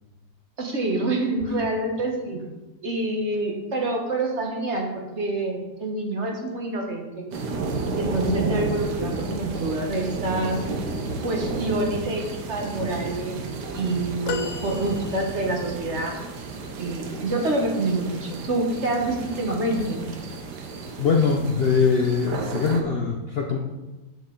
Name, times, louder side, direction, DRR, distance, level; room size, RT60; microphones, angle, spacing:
voice 1, 0.6-2.4 2.8-7.3 7.9-10.6 11.2-12.2 12.5-16.1 16.8-20.1, right 2 dB, 45° right, 1 dB, 1.4 m, -27 dB
sound 1, 7.3-22.8, right 3 dB, 90° right, 1.6 m, -32 dB
sound 2, 14.3-15.7 18.1-18.2 19.6-19.7, left 5 dB, 70° left, 1.2 m, -34 dB
voice 2, 21.0-23.6, left 5 dB, 55° left, 1 dB, 0.7 m, -22 dB
8.0 x 7.0 x 3.8 m, 1.1 s
omnidirectional pair, 1.7 m